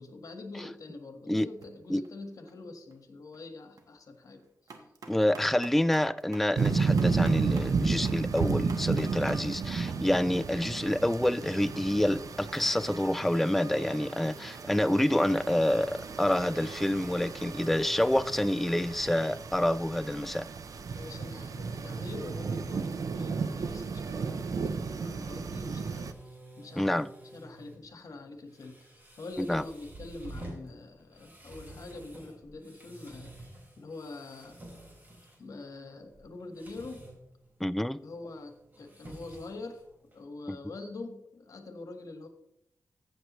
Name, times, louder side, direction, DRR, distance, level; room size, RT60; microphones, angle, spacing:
voice 1, 0.0-4.5 20.9-26.1 26.6-27.0 27.3-33.4 33.8-34.6 35.4-37.1 38.0-39.8 40.1-42.3, left 2 dB, 70° left, 1.4 m, -44 dB
sound 1, 1.5-1.7 2.0-2.6 2.9-3.0 3.3-3.9 4.2-18.0, right 3 dB, 90° right, 1.3 m, -53 dB
voice 2, 5.1-20.5 26.8-27.1 29.4-29.6 37.6-38.0 40.5-40.6, left 1 dB, 5° left, 0.3 m, -27 dB
sound 2, 6.6-26.1, right 5 dB, 75° right, 0.7 m, -33 dB
sound 3, 24.5-40.2, right 1 dB, 30° right, 3.6 m, -50 dB
14.5 x 7.6 x 3.1 m
wide cardioid pair, 80°, 6 cm